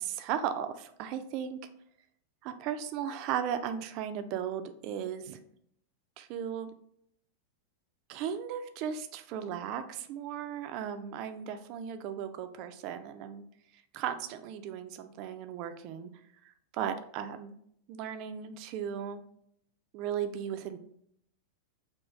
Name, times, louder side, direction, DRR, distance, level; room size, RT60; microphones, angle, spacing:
voice 1, 0.0-1.6 2.4-5.4 6.2-6.7 8.1-13.4 13.9-16.1 16.4-17.5 17.9-19.2 19.9-20.8, right 9 dB, 40° right, 9 dB, 0.3 m, -36 dB
3.5 x 2.4 x 3.1 m, 0.70 s
figure-of-eight pair, 90°, 0 cm